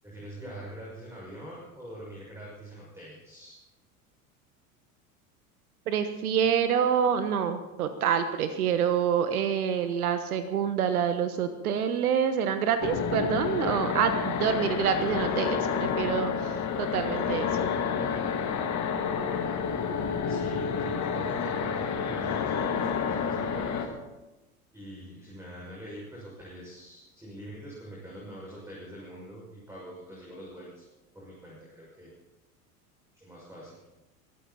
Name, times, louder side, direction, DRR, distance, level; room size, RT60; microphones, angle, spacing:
voice 1, 0.0-3.6 20.3-23.9 24.7-30.8 31.1-32.1 33.1-33.8, right 1 dB, 5° right, -5 dB, 6.3 m, -44 dB
voice 2, 5.9-17.5, right 8 dB, 75° right, 10 dB, 1.3 m, -27 dB
sound 1, 12.8-23.9, left 6 dB, 40° left, 2.5 m, -29 dB
23.0 x 13.5 x 4.3 m, 1.1 s
figure-of-eight pair, 75°, 44 cm